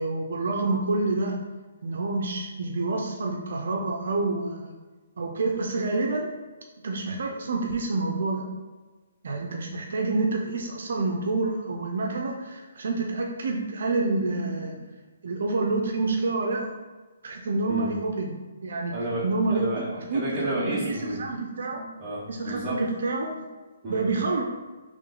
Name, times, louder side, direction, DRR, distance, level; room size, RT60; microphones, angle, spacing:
voice 1, 0.0-1.4 1.8-4.7 5.2-6.3 6.8-8.5 9.2-14.8 15.2-16.7 17.2-18.3 18.6-18.9 19.2-19.7 20.1-21.8 22.3-23.3 23.9-24.4, right 3 dB, 65° right, 1 dB, 0.6 m, -28 dB
voice 2, 18.9-21.2 22.0-22.9 23.8-24.0, right 1 dB, 10° right, -8 dB, 1.1 m, -31 dB
3.7 x 3.2 x 3.8 m, 1.3 s
hypercardioid pair, 170°, 0 cm